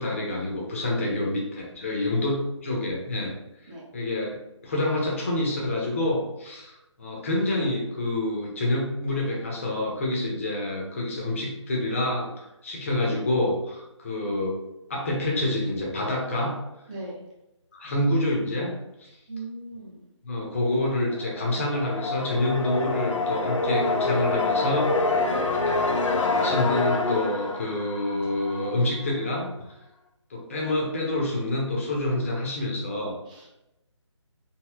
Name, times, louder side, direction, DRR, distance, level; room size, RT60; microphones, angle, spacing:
voice 1, 0.0-3.3 3.9-4.3 4.6-14.6 14.9-16.6 17.7-18.7 19.0-19.1 20.2-24.9 26.1-29.5 30.3-33.1, left 1 dB, 25° left, -2 dB, 0.6 m, -27 dB
voice 2, 1.0-1.3 1.9-2.2 3.7-3.8 16.9-17.2 19.3-20.0 33.3-33.5, right 2 dB, 15° right, -6 dB, 0.5 m, -39 dB
sound 1, 21.1-28.9, left 3 dB, 85° left, 0.6 m, -26 dB
3.1 x 2.7 x 2.3 m, 0.90 s
figure-of-eight pair, 155°, 16 cm